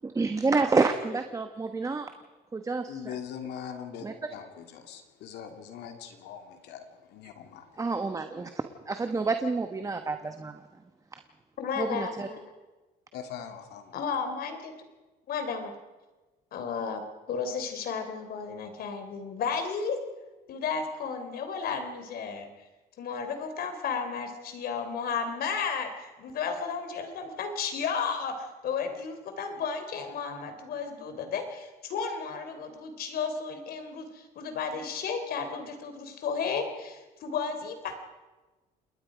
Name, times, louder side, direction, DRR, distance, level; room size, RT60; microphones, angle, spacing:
voice 1, 0.0-2.1 2.5-3.2 4.0-4.1 7.8-10.6 11.8-12.3, right 3 dB, 20° right, 8 dB, 1.2 m, -29 dB
voice 2, 2.9-4.0 4.3-7.7 13.1-14.0, left 8 dB, 80° left, 5 dB, 2.7 m, -41 dB
voice 3, 11.6-12.5 13.9-14.7 15.3-15.7 16.5-17.0 17.3-20.0 20.5-22.5 23.0-38.0, left 5 dB, 65° left, 7 dB, 3.4 m, -33 dB
28.0 x 21.0 x 5.1 m, 1.2 s
cardioid pair, 110°, 17 cm